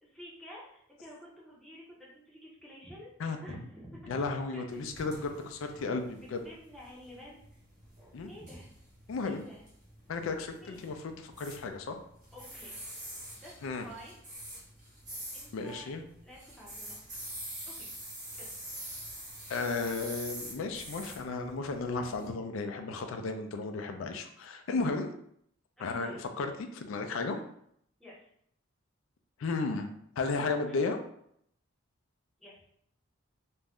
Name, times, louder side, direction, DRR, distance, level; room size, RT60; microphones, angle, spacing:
voice 1, 0.0-4.6 5.1-5.3 5.6-5.9 6.2-7.4 8.3-8.7 9.3-9.6 10.6-10.9 12.3-12.7 13.3-14.2 15.3-15.9 16.2-17.2 17.8-17.9 18.3-18.5 19.7-19.9 25.8-26.2 28.0-28.3 30.7-30.9 32.4-32.6, equal, ahead, -5 dB, 0.7 m, -50 dB
voice 2, 4.1-6.4 8.1-8.3 9.1-9.4 10.1-12.0 13.6-13.9 15.5-16.0 19.5-25.1 25.8-27.4 29.4-29.9 30.2-31.0, left 3 dB, 75° left, 6 dB, 0.4 m, -34 dB
sound 1, 4.7-22.3, right 1 dB, 35° right, 1.0 m, -46 dB
2.5 x 2.1 x 3.4 m, 0.70 s
head